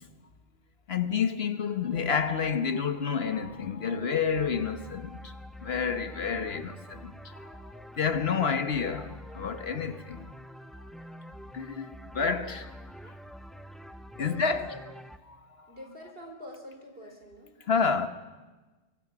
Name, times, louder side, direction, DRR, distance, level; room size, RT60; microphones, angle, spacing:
voice 1, 0.9-5.3 5.6-7.1 7.5-10.2 11.5-12.7 14.2-14.7 15.3-15.4 17.7-18.1, left 6 dB, 60° left, 1.3 m, -29 dB
sound 1, 4.3-15.2, equal, ahead, 0.6 m, -46 dB
voice 2, 14.2-14.8 15.7-17.5, left 1 dB, 55° right, 4.3 m, -45 dB
23.5 x 23.5 x 6.0 m
omnidirectional pair, 1.2 m